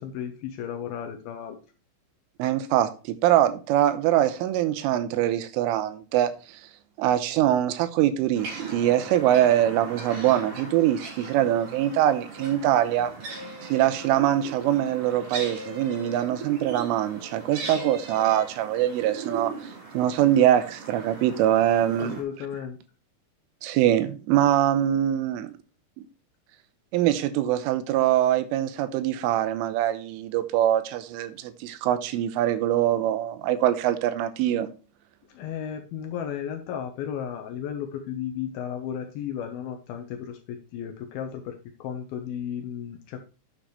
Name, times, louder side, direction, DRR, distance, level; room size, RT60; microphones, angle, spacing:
voice 1, 0.0-1.6 22.0-22.8 35.3-43.2, left 9 dB, 85° left, 2.1 m, -34 dB
voice 2, 2.4-6.3 7.0-13.1 13.7-19.5 20.0-22.2 23.6-25.6 26.9-34.7, right 12 dB, 85° right, 3.4 m, -23 dB
sound 1, 8.3-22.2, right 4 dB, 45° right, 4.4 m, -39 dB
9.9 x 8.6 x 3.2 m
omnidirectional pair, 5.7 m